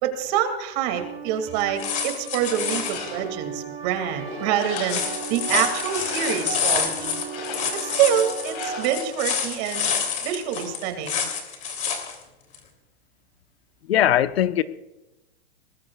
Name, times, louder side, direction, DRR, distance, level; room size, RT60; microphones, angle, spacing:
voice 1, 0.0-5.0 5.3-7.2 7.7-9.9 10.2-11.2, right 9 dB, 40° right, 7 dB, 2.5 m, -26 dB
sound 1, 1.0-8.9, right 6 dB, 20° right, 2.4 m, -36 dB
sound 2, 1.6-3.1 4.6-12.1 12.5-12.6, left 6 dB, 25° left, 3.1 m, -28 dB
sound 3, 2.5-3.4 3.9-5.3 5.7-6.6 7.2-8.0 8.5-9.1, left 6 dB, 40° left, 4.3 m, -37 dB
voice 2, 13.9-14.6, left 11 dB, 70° left, 11 dB, 1.0 m, -20 dB
23.5 x 20.0 x 2.4 m, 1.0 s
hypercardioid pair, 145°, 32 cm